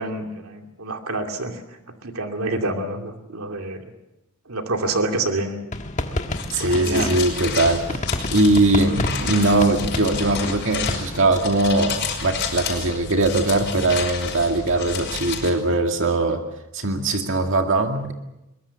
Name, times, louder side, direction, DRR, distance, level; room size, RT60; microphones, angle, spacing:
voice 1, 0.0-3.9 4.5-5.7 6.6-7.2, right 2 dB, 90° right, 4 dB, 2.6 m, -28 dB
sound 1, 5.7-11.3, left 1 dB, 35° left, 1.5 m, -30 dB
sound 2, 6.3-15.5, left 5 dB, 50° left, 5.4 m, -30 dB
voice 2, 6.5-8.0 8.3-16.4 16.7-18.1, right 2 dB, 60° right, 4 dB, 2.2 m, -21 dB
22.5 x 22.5 x 7.1 m, 0.92 s
head